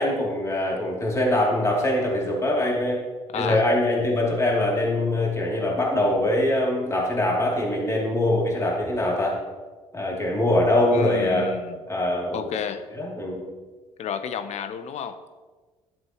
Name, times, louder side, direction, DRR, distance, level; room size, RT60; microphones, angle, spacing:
voice 1, 0.0-3.0 3.3-9.4 9.9-11.5 11.9-12.5 12.9-13.4, left 1 dB, 25° left, -3 dB, 2.9 m, -23 dB
voice 2, 3.3-3.7 10.9-11.8 12.3-12.9 14.0-15.2, left 7 dB, 60° left, 10 dB, 0.8 m, -31 dB
12.5 x 7.5 x 3.1 m, 1.3 s
supercardioid pair, 70°, 13 cm